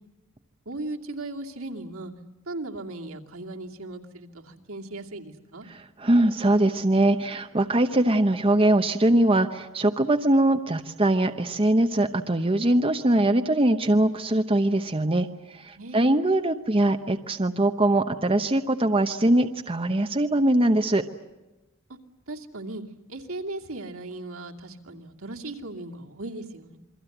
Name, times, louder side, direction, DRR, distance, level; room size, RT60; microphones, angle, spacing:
voice 1, 0.7-2.1 2.5-5.6 15.8-16.1 22.3-22.8 23.1-26.8, right 2 dB, 75° right, 1 dB, 2.6 m, -37 dB
voice 2, 5.7-15.3 15.5-21.0, right 1 dB, 25° right, 6 dB, 0.9 m, -22 dB
28.0 x 23.5 x 8.0 m, 1.1 s
head